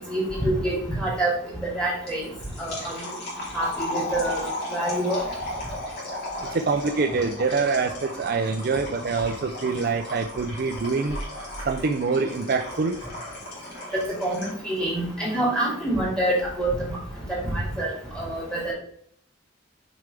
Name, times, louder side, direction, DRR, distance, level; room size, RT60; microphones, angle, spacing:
voice 1, 0.1-1.3 1.6-2.2 2.6-2.9 3.5-5.2 13.9-16.7 17.4-17.9 18.1-18.7, right 1 dB, 5° left, -4 dB, 2.6 m, -26 dB
sound 1, 2.1-14.7, left 1 dB, 55° left, 2.9 m, -35 dB
voice 2, 6.5-11.2 11.7-13.0, right 4 dB, 50° right, 7 dB, 0.4 m, -25 dB
6.6 x 5.1 x 3.4 m, 0.63 s
head